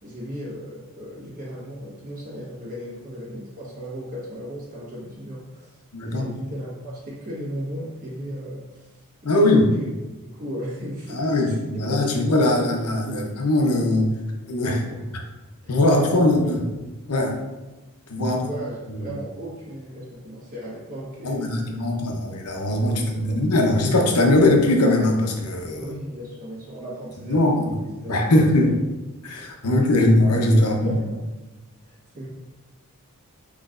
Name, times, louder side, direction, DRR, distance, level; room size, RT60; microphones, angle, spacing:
voice 1, 0.0-9.8 10.2-11.6 12.0-12.7 13.0-13.3 14.9-15.1 15.6-16.5 18.2-21.8 22.9-23.4 25.7-27.7 28.0-28.7 29.7-30.1 30.5-31.2 31.8-32.3, equal, 35° right, -7 dB, 1.5 m, -36 dB
voice 2, 5.9-6.3 9.2-9.7 11.1-14.1 14.5-14.8 15.7-16.7 17.1-17.4 18.1-18.4 18.9-19.1 21.2-25.9 27.2-27.8 28.1-28.8 29.2-31.0, left 1 dB, 90° left, 1 dB, 0.9 m, -20 dB
6.0 x 3.2 x 2.5 m, 1.1 s
head